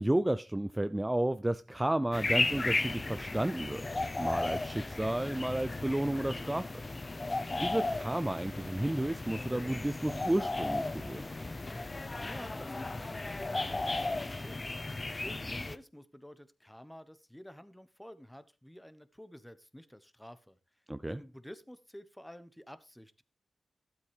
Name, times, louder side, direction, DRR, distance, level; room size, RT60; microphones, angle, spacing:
voice 1, 0.0-3.8 4.2-6.7 7.6-11.3 20.9-21.2, right 1 dB, 15° right, 0.4 m, -32 dB
sound 1, 2.1-15.8, left 2 dB, 35° left, 0.7 m, -35 dB
voice 2, 12.2-14.7 15.2-20.6 21.1-23.2, equal, 5° left, 1.1 m, -50 dB
12.5 x 8.0 x 3.4 m
cardioid pair, 45°, 0 cm